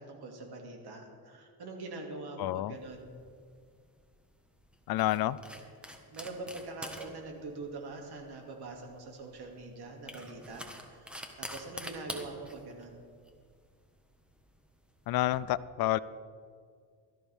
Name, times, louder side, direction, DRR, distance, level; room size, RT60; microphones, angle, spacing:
voice 1, 0.0-3.1 6.1-13.0, right 3 dB, 65° right, 2 dB, 2.5 m, -44 dB
voice 2, 2.4-2.7 4.9-5.4 15.1-16.0, left 14 dB, 60° left, 17 dB, 0.5 m, -29 dB
sound 1, 2.8-15.4, equal, ahead, 1.5 m, -47 dB
17.0 x 13.5 x 3.6 m, 2.1 s
cardioid pair, 100°, 42 cm